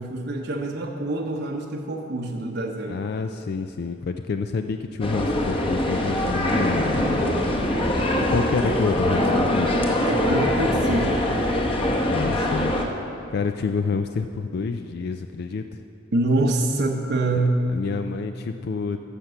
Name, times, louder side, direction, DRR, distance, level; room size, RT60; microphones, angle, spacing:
voice 1, 0.0-3.0 10.0-11.2 16.1-17.6, right 2 dB, 55° right, 0 dB, 0.8 m, -25 dB
voice 2, 2.9-7.4 8.3-9.8 12.1-12.7 13.3-15.8 17.7-19.0, left 4 dB, 55° left, 8 dB, 0.4 m, -28 dB
sound 1, 5.0-12.8, left 1 dB, 30° left, 1.0 m, -23 dB
14.0 x 5.9 x 6.8 m, 3.0 s
head